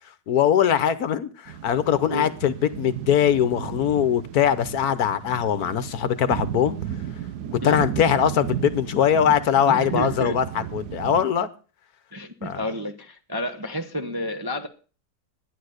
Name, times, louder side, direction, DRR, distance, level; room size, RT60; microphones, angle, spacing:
voice 1, 0.3-6.8 7.5-11.5 12.4-12.6, left 9 dB, 65° left, 1.3 m, -21 dB
sound 1, 1.5-11.3, right 10 dB, 70° right, 1.3 m, -34 dB
voice 2, 9.6-10.4 12.1-14.7, equal, 20° right, 0.7 m, -30 dB
11.5 x 10.0 x 6.5 m
omnidirectional pair, 1.8 m